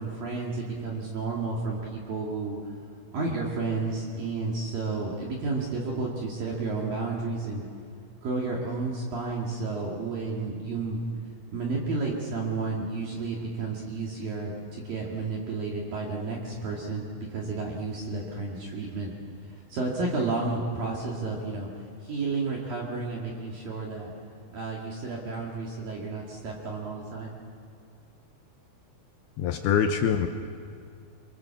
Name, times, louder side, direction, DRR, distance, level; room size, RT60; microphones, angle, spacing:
voice 1, 0.0-2.6 3.1-7.6 8.2-11.0 11.5-19.1 19.5-21.7 22.0-24.1 24.5-27.4, right 3 dB, 55° right, -2 dB, 3.5 m, -31 dB
voice 2, 29.4-30.3, left 8 dB, 80° left, 6 dB, 2.3 m, -24 dB
25.0 x 24.5 x 7.1 m, 2.2 s
omnidirectional pair, 5.6 m